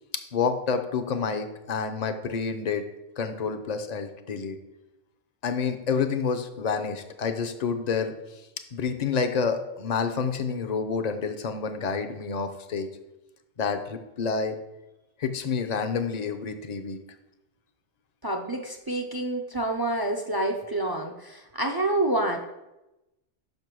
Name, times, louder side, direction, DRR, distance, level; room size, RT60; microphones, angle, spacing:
voice 1, 0.3-2.8 3.2-4.6 5.4-8.1 8.7-12.9 13.6-14.6 15.2-17.0, left 5 dB, 45° left, 7 dB, 0.6 m, -28 dB
voice 2, 18.2-22.4, right 2 dB, 35° right, 3 dB, 0.3 m, -28 dB
5.8 x 5.3 x 6.1 m, 0.96 s
omnidirectional pair, 1.3 m